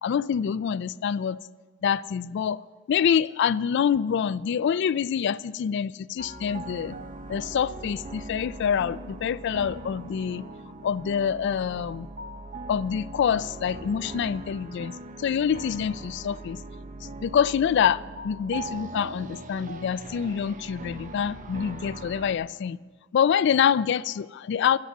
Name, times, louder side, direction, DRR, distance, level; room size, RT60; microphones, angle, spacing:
voice 1, 0.0-1.4 1.8-2.6 2.9-7.0 7.3-10.4 10.8-12.1 12.7-16.6 17.0-22.8 23.1-24.8, left 8 dB, 60° left, 17 dB, 0.3 m, -26 dB
sound 1, 6.2-22.3, right 2 dB, 40° right, 0.7 m, -40 dB
12.0 x 9.7 x 7.2 m, 1.4 s
head